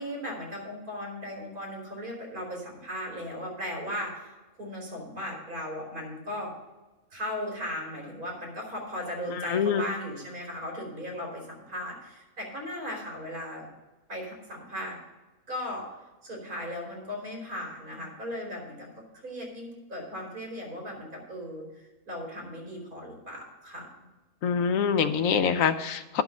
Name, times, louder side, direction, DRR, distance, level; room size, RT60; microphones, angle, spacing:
voice 1, 0.0-4.3 4.6-6.5 7.1-13.7 14.1-15.0 15.5-15.9 16.2-23.9, left 1 dB, 85° right, -1 dB, 3.9 m, -37 dB
voice 2, 9.3-9.8 24.4-26.2, left 7 dB, 70° left, 10 dB, 1.0 m, -25 dB
10.5 x 6.1 x 6.2 m, 1.2 s
omnidirectional pair, 1.5 m